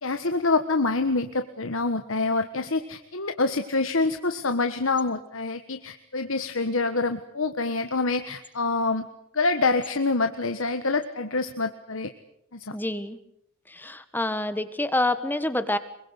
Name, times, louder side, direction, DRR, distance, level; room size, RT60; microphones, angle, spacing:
voice 1, 0.0-9.1 9.3-12.1 12.5-12.7, left 3 dB, 70° left, 8 dB, 1.4 m, -26 dB
voice 2, 12.7-13.2 13.7-15.8, left 1 dB, 10° left, 11 dB, 1.3 m, -27 dB
25.5 x 23.0 x 8.1 m, 0.74 s
head